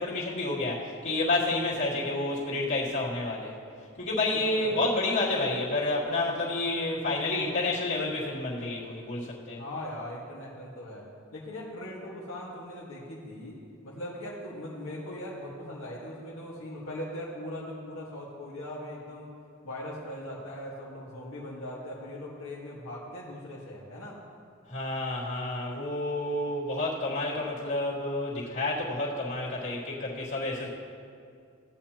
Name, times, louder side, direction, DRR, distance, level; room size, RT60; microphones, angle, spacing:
voice 1, 0.0-3.6 4.0-9.6 24.7-30.7, left 2 dB, 65° left, -7 dB, 2.6 m, -29 dB
voice 2, 4.3-4.8 9.6-11.1 11.3-13.6 13.8-19.3 19.6-24.2, left 1 dB, 90° left, -6 dB, 1.6 m, -40 dB
16.5 x 8.9 x 2.9 m, 2.3 s
head